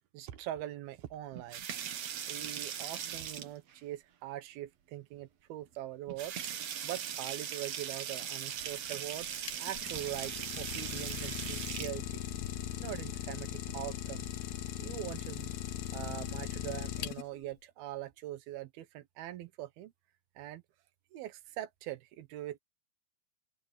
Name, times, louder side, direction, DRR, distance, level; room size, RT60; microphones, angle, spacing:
voice 1, 0.1-1.6 2.3-6.3 6.8-9.3 9.6-12.3 12.8-14.3 14.8-15.5 15.9-19.9 20.4-20.6 21.1-22.6, right 14 dB, 85° right, 3.1 m, -42 dB
sound 1, 1.3-3.7 5.1-5.2 5.6-5.7 6.1-11.9 13.6-14.2, right 9 dB, 55° right, 2.1 m, -40 dB
Idling, 9.2-17.5, left 11 dB, 80° left, 3.1 m, -39 dB
open air
omnidirectional pair, 4.3 m